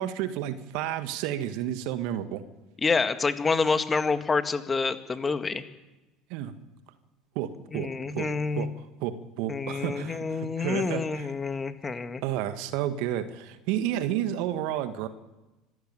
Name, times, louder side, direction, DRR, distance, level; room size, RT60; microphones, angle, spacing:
voice 1, 0.0-2.4 6.3-6.5 7.3-7.9 8.1-8.7 9.0-11.3 12.2-15.1, right 11 dB, 60° right, 11 dB, 1.7 m, -31 dB
voice 2, 2.8-5.6 7.7-8.7 9.5-12.2, left 4 dB, 25° left, 10 dB, 1.8 m, -27 dB
25.5 x 13.5 x 9.1 m, 1.1 s
hypercardioid pair, 70°, 0 cm